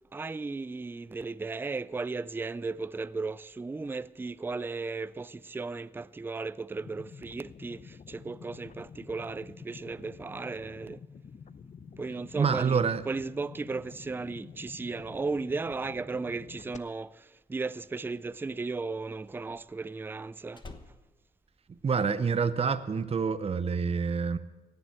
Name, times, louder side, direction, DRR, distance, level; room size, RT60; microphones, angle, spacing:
voice 1, 0.1-11.0 12.0-12.8 13.1-20.6, right 3 dB, 15° right, 0.3 m, -35 dB
sound 1, 6.8-16.8, left 6 dB, 45° left, 0.7 m, -49 dB
voice 2, 12.4-13.0 21.8-24.4, right 5 dB, 35° right, 0.7 m, -27 dB
Slam, 18.2-22.4 22.6-23.1, left 3 dB, 25° left, 1.2 m, -52 dB
17.5 x 6.9 x 7.8 m
cardioid pair, 85°, 17 cm